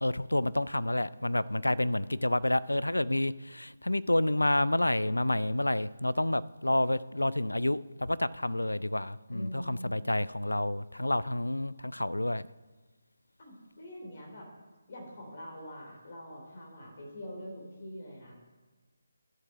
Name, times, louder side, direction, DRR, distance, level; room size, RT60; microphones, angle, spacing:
voice 1, 0.0-12.5, left 1 dB, 80° left, 17 dB, 0.4 m, -29 dB
voice 2, 9.3-9.9 13.4-14.5 14.9-18.3, equal, 45° left, -1 dB, 3.1 m, -44 dB
11.5 x 7.3 x 5.7 m, 1.3 s
figure-of-eight pair, 150°, 0 cm